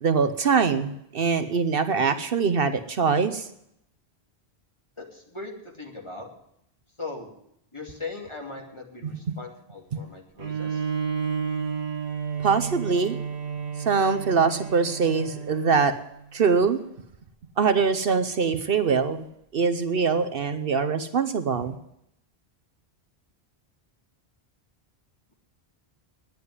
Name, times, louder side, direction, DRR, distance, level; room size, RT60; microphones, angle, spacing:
voice 1, 0.0-3.5 9.0-9.4 9.9-10.0 12.4-13.2 13.8-16.0 16.3-16.8 17.6-19.2 19.5-21.7, right 5 dB, 60° right, 10 dB, 1.0 m, -23 dB
voice 2, 5.0-6.3 7.0-7.3 7.7-10.9, left 3 dB, 25° left, 0 dB, 2.9 m, -39 dB
Bowed string instrument, 10.4-16.0, right 6 dB, 75° right, 1.7 m, -31 dB
10.5 x 9.6 x 9.6 m, 0.75 s
omnidirectional pair, 1.1 m